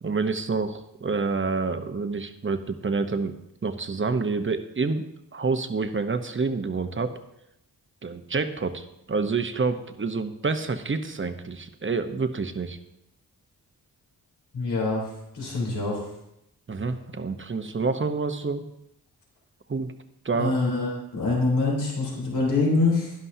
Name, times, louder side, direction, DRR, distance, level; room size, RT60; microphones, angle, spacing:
voice 1, 0.0-3.3 3.6-5.0 5.3-7.1 8.0-12.8 16.7-18.7 19.7-19.9 20.2-20.5, right 4 dB, 30° right, 8 dB, 0.9 m, -28 dB
voice 2, 14.5-15.0 15.3-16.1 20.3-23.1, left 3 dB, 75° left, -4 dB, 3.7 m, -25 dB
11.5 x 11.0 x 2.8 m, 0.82 s
cardioid pair, 55°, 40 cm